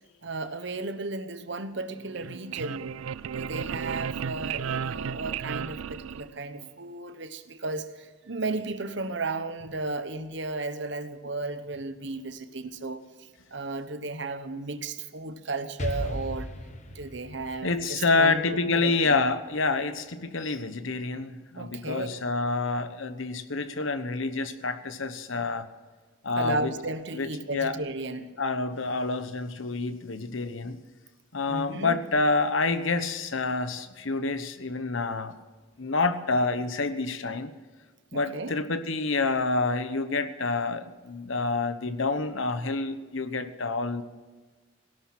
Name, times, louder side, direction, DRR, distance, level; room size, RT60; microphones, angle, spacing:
voice 1, 0.2-2.9 3.3-16.5 16.9-18.4 18.8-19.2 21.6-22.1 26.4-28.3 31.5-32.0 38.1-38.6, right 3 dB, 60° right, 10 dB, 1.0 m, -34 dB
sound 1, 2.0-6.7, right 7 dB, 85° right, 0.4 m, -34 dB
Explosion, 15.8-19.6, left 1 dB, 35° left, 1.1 m, -37 dB
voice 2, 17.6-25.7 26.2-26.7 27.1-27.8 28.4-30.8 31.3-35.3 35.8-37.5 38.1-44.0, left 3 dB, 75° left, 11 dB, 1.1 m, -28 dB
17.5 x 12.0 x 6.0 m, 1.4 s
head